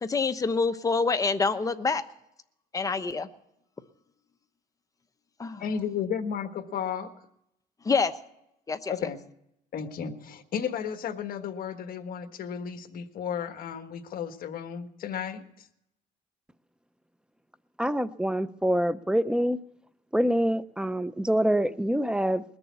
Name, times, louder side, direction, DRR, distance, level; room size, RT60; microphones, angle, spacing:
voice 1, 0.0-2.0 2.7-3.3 5.4-5.6 7.8-8.1 8.7-8.9, left 4 dB, 20° left, 8 dB, 0.9 m, -26 dB
voice 2, 5.6-7.1 8.9-9.2 9.7-15.4, left 7 dB, 60° left, 8 dB, 1.5 m, -33 dB
voice 3, 17.8-19.6 20.1-22.4, equal, 5° right, 16 dB, 0.5 m, -25 dB
20.5 x 7.0 x 8.3 m, 0.80 s
cardioid pair, 110°, 17 cm